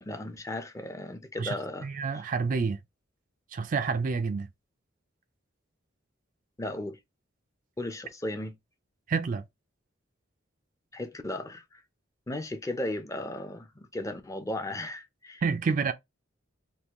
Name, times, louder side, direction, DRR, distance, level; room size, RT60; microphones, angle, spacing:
voice 1, 0.0-1.9 6.6-7.0 7.8-8.5 10.9-11.8 12.3-15.4, left 1 dB, 15° left, 0.5 m, -35 dB
voice 2, 1.4-2.8 3.5-4.5 9.1-9.4 15.4-15.9, right 5 dB, 45° right, 0.4 m, -28 dB
3.5 x 2.3 x 2.9 m
head